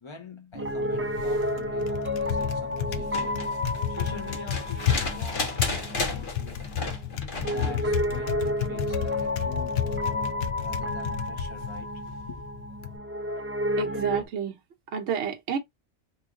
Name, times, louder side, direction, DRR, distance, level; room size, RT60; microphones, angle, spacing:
voice 1, 0.0-3.6 3.9-6.7 7.4-12.4, left 5 dB, 30° left, 0.7 m, -45 dB
Typing, 0.5-13.0, left 9 dB, 65° left, 0.8 m, -33 dB
Piano, 0.5-14.3, left 1 dB, 20° right, 0.4 m, -31 dB
sound 1, 2.9-7.8 9.4-9.5, left 3 dB, 50° left, 1.2 m, -34 dB
voice 2, 13.8-14.6 14.9-15.6, right 8 dB, 70° right, 1.0 m, -29 dB
3.1 x 2.3 x 3.6 m
omnidirectional pair, 1.2 m